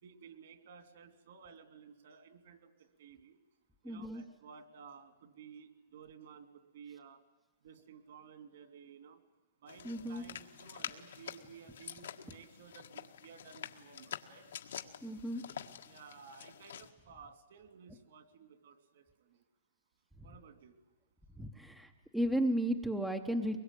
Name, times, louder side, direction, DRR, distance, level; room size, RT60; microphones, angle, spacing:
voice 1, 0.0-3.4 3.8-7.2 7.6-9.2 9.6-14.4 15.8-19.4 20.2-20.8, right 6 dB, 55° right, 9 dB, 2.8 m, -55 dB
voice 2, 3.8-4.2 9.8-10.2 15.0-15.4 20.2-20.4 21.4-23.6, equal, ahead, 6 dB, 0.8 m, -34 dB
sound 1, 9.7-16.9, left 9 dB, 80° left, 1.7 m, -47 dB
23.5 x 22.0 x 9.1 m, 1.2 s
hypercardioid pair, 175°, 0 cm